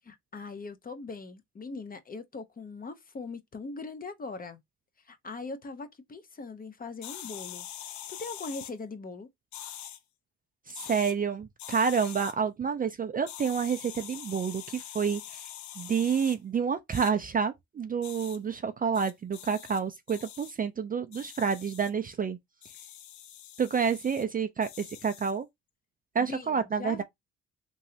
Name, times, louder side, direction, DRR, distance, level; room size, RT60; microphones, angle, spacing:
voice 1, 0.1-4.6 5.0-9.3 26.2-27.0, left 3 dB, 30° left, 0.6 m, -41 dB
sound 1, 7.0-8.7 9.5-10.0 10.7-11.1 11.6-12.3 13.3-16.4 16.9-17.1 18.0-18.4 18.9-19.8 20.1-20.5 21.1-21.9 22.6-24.2 24.6-25.4, left 11 dB, 70° left, 0.6 m, -44 dB
voice 2, 10.7-15.5 15.8-22.4 23.6-25.5 26.1-27.0, right 6 dB, 30° right, 0.4 m, -29 dB
3.1 x 2.7 x 2.7 m
cardioid pair, 90°, 30 cm